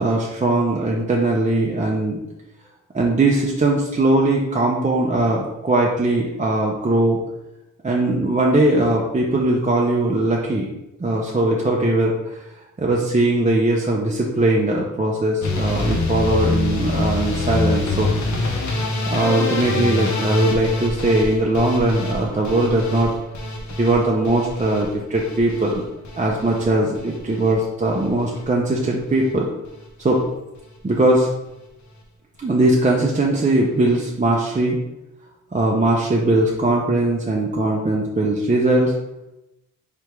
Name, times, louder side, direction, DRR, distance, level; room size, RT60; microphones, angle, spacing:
voice 1, 0.0-2.2 2.9-7.2 7.8-10.7 11.0-12.4 12.8-18.1 19.1-23.1 23.8-25.9 26.2-29.5 30.0-30.2 30.8-31.3 32.4-34.8 35.5-38.9, right 2 dB, 20° right, -2 dB, 0.7 m, -20 dB
sound 1, 15.4-27.5 27.8-28.4 28.7-29.3 29.6-29.9 30.2-30.3 30.5-30.6, left 2 dB, 55° left, 1.0 m, -25 dB
3.4 x 2.9 x 4.7 m, 0.93 s
supercardioid pair, 50°, 35 cm